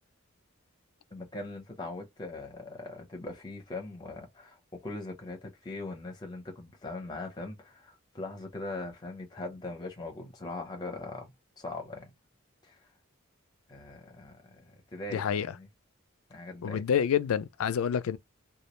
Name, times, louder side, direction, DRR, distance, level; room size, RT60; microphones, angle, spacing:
voice 1, 1.1-11.3 11.6-12.1 12.6-12.8 13.7-15.7 16.3-16.8, left 2 dB, 20° left, 0.7 m, -41 dB
voice 2, 15.1-15.5 16.6-18.2, left 8 dB, 80° left, 0.3 m, -28 dB
2.3 x 2.0 x 3.0 m
head